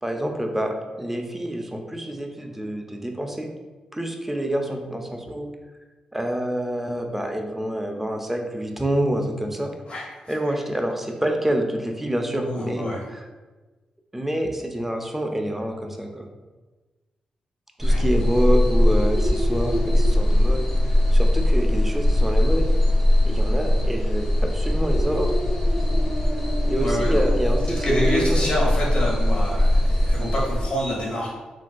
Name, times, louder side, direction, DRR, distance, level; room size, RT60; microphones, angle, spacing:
voice 1, 0.0-3.5 3.9-5.5 6.1-9.7 10.3-12.9 14.1-16.3 17.8-20.7 21.1-22.7 23.3-25.3 26.7-28.5, right 1 dB, 10° right, 3 dB, 0.5 m, -27 dB
voice 2, 9.9-10.5 12.4-13.0 17.8-18.1 26.8-27.2 27.8-31.3, equal, 45° left, -4 dB, 1.0 m, -27 dB
sound 1, 17.8-30.7, left 1 dB, 10° left, 1.2 m, -20 dB
3.6 x 2.6 x 2.3 m, 1.2 s
supercardioid pair, 50°, 2 cm